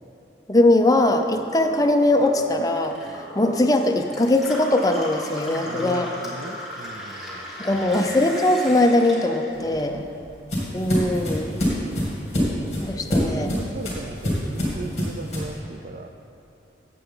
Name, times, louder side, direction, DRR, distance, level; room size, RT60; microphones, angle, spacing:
voice 1, 0.5-6.1 7.6-10.0 10.7-11.6 12.8-13.5, left 1 dB, 20° left, 4 dB, 0.5 m, -20 dB
Gurgling / Water tap faucet / Sink (filling or washing), 0.8-10.3 10.6-11.5, equal, ahead, 1.7 m, -37 dB
voice 2, 5.6-8.0 9.7-9.8 10.2-10.3 11.5-11.7 13.0-16.1, right 3 dB, 45° right, 5 dB, 0.4 m, -38 dB
sound 1, 9.5-15.6, equal, 35° left, 2.5 m, -26 dB
13.5 x 7.8 x 3.8 m, 2.8 s
head